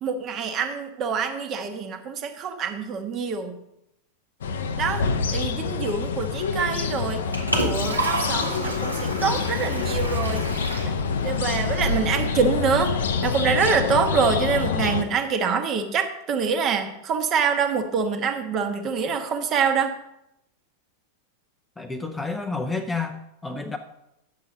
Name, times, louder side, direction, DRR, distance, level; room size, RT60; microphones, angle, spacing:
voice 1, 0.0-3.6 4.8-5.0 5.3-7.2 7.6-10.5 10.8-10.9 11.2-13.0 13.2-19.9, right 5 dB, 30° right, 6 dB, 1.1 m, -25 dB
sound 1, 4.4-15.0, left 5 dB, 65° left, 0.6 m, -26 dB
Liquid, 7.0-12.0, right 1 dB, 85° right, 1.6 m, -31 dB
voice 2, 21.8-23.8, left 3 dB, 10° left, 6 dB, 0.6 m, -30 dB
9.2 x 6.8 x 5.1 m, 0.84 s
figure-of-eight pair, 90°, 0 cm